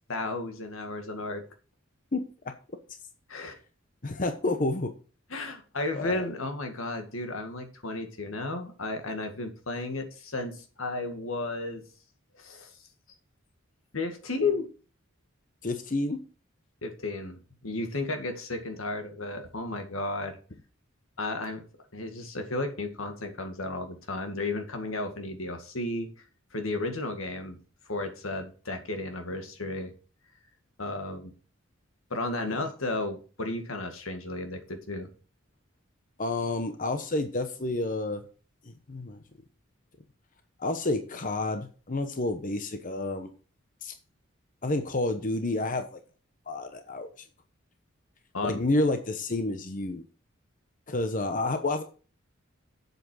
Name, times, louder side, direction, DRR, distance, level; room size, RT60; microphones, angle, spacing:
voice 1, 0.1-1.4 3.3-3.6 5.3-11.8 12.3-12.7 13.9-14.7 16.8-20.4 21.2-21.6 21.9-26.1 26.5-27.6 27.9-29.9 30.8-31.3 32.1-35.1 48.3-48.6, left 2 dB, 80° left, 6 dB, 2.0 m, -33 dB
voice 2, 4.0-4.9 5.9-6.2 15.6-16.2 32.5-32.6 36.2-38.2 38.6-39.2 40.6-43.3 43.8-43.9 44.6-46.0 46.5-47.1 48.4-50.0 50.9-51.8, left 2 dB, 40° left, 7 dB, 1.0 m, -29 dB
7.9 x 7.5 x 6.3 m, 0.38 s
head